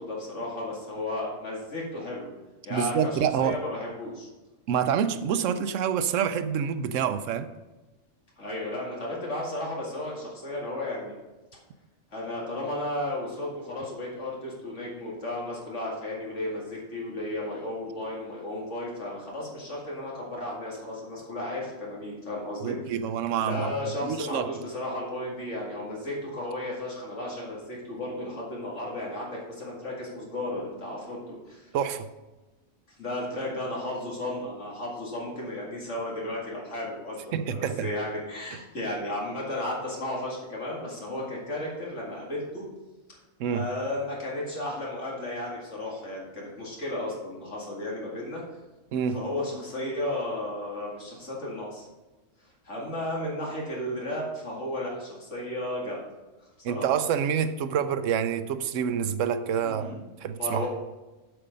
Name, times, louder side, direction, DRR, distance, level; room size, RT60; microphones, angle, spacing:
voice 1, 0.0-2.3 2.6-4.3 8.4-11.2 12.1-22.7 23.4-31.7 33.0-37.2 37.5-42.7 43.5-48.4 49.1-51.9 52.6-56.0 56.7-56.9 59.6-60.0 60.4-60.7, left 1 dB, 65° left, -3 dB, 2.4 m, -34 dB
voice 2, 2.7-3.6 4.7-7.5 22.6-23.7 24.0-24.5 31.7-32.1 37.3-37.9 43.4-43.7 48.9-49.2 56.6-59.9 60.2-60.6, right 8 dB, 80° right, 11 dB, 1.0 m, -27 dB
7.9 x 6.9 x 5.1 m, 1.1 s
omnidirectional pair, 1.3 m